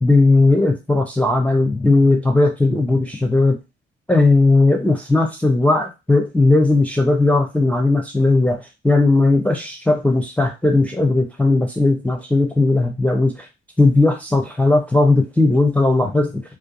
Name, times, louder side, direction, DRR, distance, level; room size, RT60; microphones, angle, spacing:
voice 1, 0.0-3.6 4.1-13.5 13.8-16.4, left 2 dB, 5° left, 3 dB, 0.4 m, -17 dB
2.5 x 2.3 x 2.5 m, 0.26 s
figure-of-eight pair, 45°, 29 cm